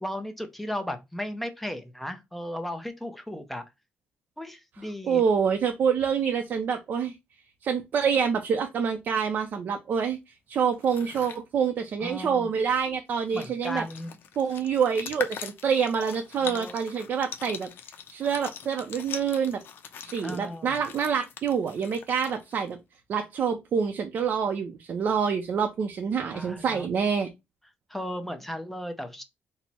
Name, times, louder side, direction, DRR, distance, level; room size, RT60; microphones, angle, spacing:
voice 1, 0.0-3.6 4.4-5.2 12.0-12.5 13.3-14.2 16.4-16.7 20.2-20.8 26.3-26.9 27.9-29.2, equal, 5° left, 0.5 m, -35 dB
voice 2, 5.0-7.1 7.6-13.8 14.4-17.7 18.1-19.6 20.0-22.8 23.1-27.3, right 6 dB, 50° right, 0.4 m, -27 dB
sound 1, 10.7-11.4 12.8-12.9 13.2-22.7, left 7 dB, 60° left, 0.6 m, -41 dB
4.3 x 2.0 x 4.0 m
cardioid pair, 165°, 4 cm